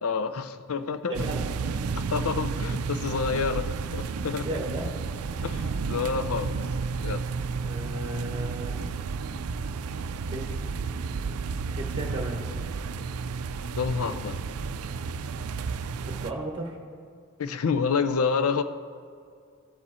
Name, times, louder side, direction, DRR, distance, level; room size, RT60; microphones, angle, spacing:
voice 1, 0.0-1.1 2.0-4.5 5.4-6.5 7.0-7.2 13.8-14.4 17.4-18.6, left 5 dB, 75° left, 12 dB, 0.5 m, -28 dB
voice 2, 1.1-1.5 4.4-4.9 7.6-9.0 10.3-10.5 11.7-12.4 16.0-16.8, right 1 dB, 25° right, 2 dB, 1.1 m, -35 dB
sound 1, 1.1-16.3, right 5 dB, 80° right, 0.4 m, -32 dB
15.5 x 7.4 x 4.3 m, 2.2 s
head